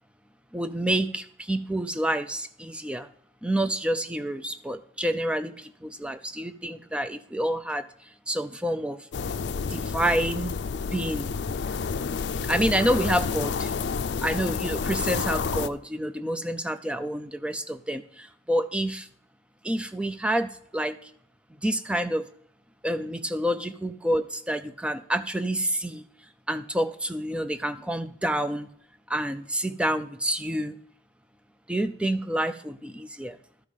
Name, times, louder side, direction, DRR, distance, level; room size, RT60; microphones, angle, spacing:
voice 1, 0.5-3.1 3.4-7.8 8.3-9.0 9.7-10.5 10.9-11.3 12.5-13.7 14.2-19.1 19.6-21.0 21.6-22.3 22.8-26.0 26.5-28.7 29.1-30.8 31.7-33.4, right 1 dB, 5° right, 10 dB, 0.4 m, -28 dB
sound 1, 9.1-15.7, left 5 dB, 80° left, 0.4 m, -29 dB
12.5 x 5.5 x 4.9 m, 0.69 s
head